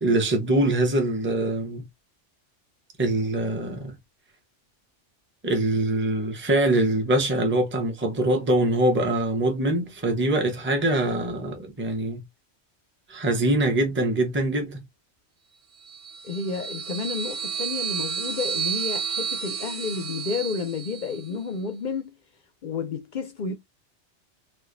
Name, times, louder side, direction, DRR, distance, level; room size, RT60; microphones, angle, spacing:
voice 1, 0.0-1.8 3.0-3.9 5.4-12.2 13.1-14.8, right 1 dB, 10° right, 0.7 m, -23 dB
sound 1, 15.8-21.3, right 8 dB, 90° right, 1.2 m, -31 dB
voice 2, 16.2-22.1 22.6-23.5, left 5 dB, 55° left, 0.5 m, -31 dB
4.4 x 2.3 x 2.5 m
omnidirectional pair, 1.2 m